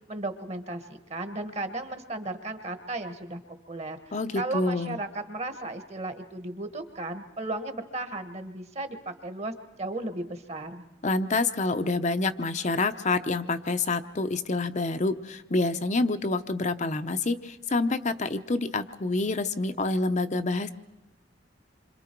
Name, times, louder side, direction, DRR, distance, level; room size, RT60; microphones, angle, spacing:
voice 1, 0.1-3.4 3.7-9.5 9.8-10.8, right 2 dB, 35° right, 9 dB, 1.4 m, -35 dB
voice 2, 4.1-5.0 11.0-20.7, left 3 dB, 40° left, 8 dB, 0.7 m, -27 dB
27.5 x 25.5 x 4.6 m, 1.0 s
head